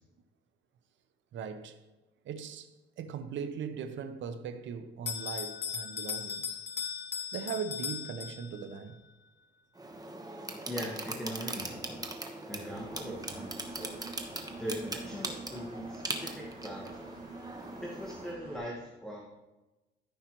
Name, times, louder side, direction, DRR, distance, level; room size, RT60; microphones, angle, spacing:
voice 1, 1.3-1.8 2.2-2.7 3.0-6.6 7.3-9.0, right 6 dB, 70° right, 0.8 m, -39 dB
Bell, 5.1-8.8, left 7 dB, 60° left, 1.0 m, -38 dB
sound 1, 9.7-18.3, right 2 dB, 20° right, 1.1 m, -41 dB
voice 2, 10.7-12.0 12.5-14.0 14.6-17.2 17.8-19.2, equal, 5° left, 1.5 m, -40 dB
Engine, 12.7-18.6, right 3 dB, 40° right, 2.8 m, -47 dB
14.0 x 5.6 x 3.1 m
cardioid pair, 90°, 20 cm